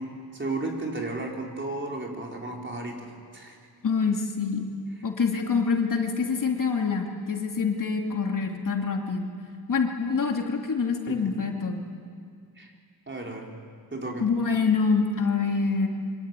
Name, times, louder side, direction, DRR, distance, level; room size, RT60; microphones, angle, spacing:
voice 1, 0.0-3.6 11.1-11.2 12.6-12.7 13.1-13.5 13.9-14.2, right 2 dB, 30° right, 0 dB, 4.4 m, -34 dB
voice 2, 3.8-4.7 5.0-9.3 9.7-11.8 14.2-15.9, left 5 dB, 55° left, 1 dB, 2.7 m, -26 dB
26.0 x 25.0 x 9.1 m, 2.3 s
wide cardioid pair, 120°, 39 cm